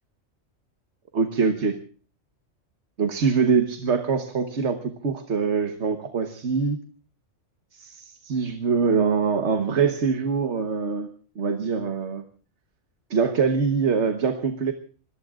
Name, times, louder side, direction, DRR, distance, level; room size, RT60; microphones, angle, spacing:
voice 1, 1.1-1.7 3.0-6.8 7.7-11.1 11.3-12.2 13.1-14.7, right 5 dB, 65° right, 7 dB, 1.5 m, -24 dB
27.0 x 22.0 x 2.4 m, 0.40 s
omnidirectional pair, 1.3 m